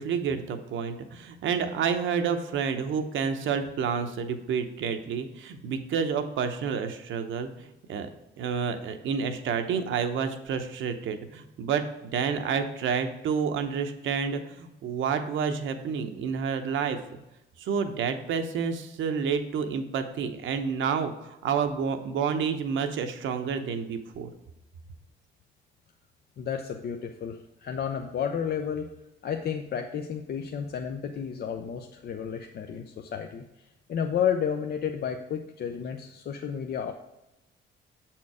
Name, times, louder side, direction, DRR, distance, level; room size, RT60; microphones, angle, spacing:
voice 1, 0.0-8.1 8.4-17.0 17.6-24.3, right 6 dB, 75° right, 7 dB, 0.8 m, -29 dB
voice 2, 26.4-28.9 29.2-33.4 33.9-36.9, left 8 dB, 55° left, 5 dB, 0.6 m, -31 dB
7.1 x 4.5 x 4.7 m, 0.94 s
cardioid pair, 90°, 20 cm